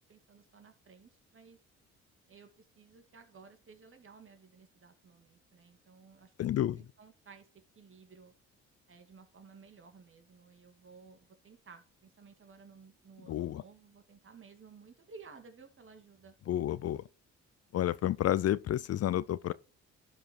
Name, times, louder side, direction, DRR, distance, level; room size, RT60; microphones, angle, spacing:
voice 1, 0.1-1.6 2.3-6.3 6.7-7.5 7.7-8.3 8.9-16.4, right 5 dB, 40° right, 2.5 m, -56 dB
voice 2, 6.4-6.8 13.3-13.6 16.5-17.0 17.7-19.5, left 12 dB, 50° left, 0.5 m, -30 dB
12.0 x 4.8 x 4.5 m
supercardioid pair, 60°, 31 cm